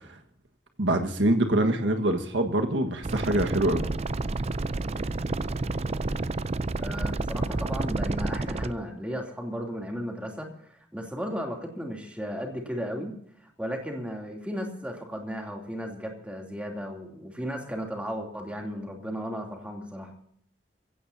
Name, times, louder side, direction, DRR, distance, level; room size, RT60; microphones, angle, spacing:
voice 1, 0.8-3.9, right 1 dB, 85° right, 6 dB, 1.6 m, -24 dB
sound 1, 3.0-8.7, right 2 dB, 35° right, 0.5 m, -30 dB
voice 2, 6.8-13.1 13.4-20.1, equal, 5° right, 1 dB, 2.9 m, -35 dB
23.5 x 16.5 x 2.8 m, 0.67 s
head